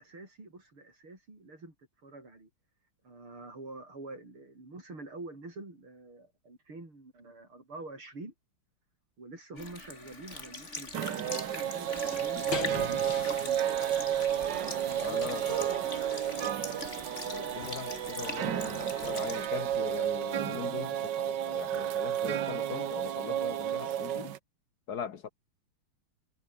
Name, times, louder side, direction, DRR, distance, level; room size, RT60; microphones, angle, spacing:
voice 1, 0.0-1.7 2.0-2.5 3.0-8.3 9.2-13.8 14.7-16.0, right 2 dB, 85° right, 8.4 m, -47 dB
Sink (filling or washing) / Liquid, 9.6-19.5, left 3 dB, 30° left, 4.0 m, -43 dB
sound 1, 10.9-24.4, right 10 dB, 60° right, 1.6 m, -32 dB
sound 2, 12.0-20.1, left 4 dB, 70° left, 4.3 m, -45 dB
voice 2, 15.0-15.6 17.2-24.3 24.9-25.3, left 7 dB, 55° left, 1.4 m, -41 dB
omnidirectional pair, 2.3 m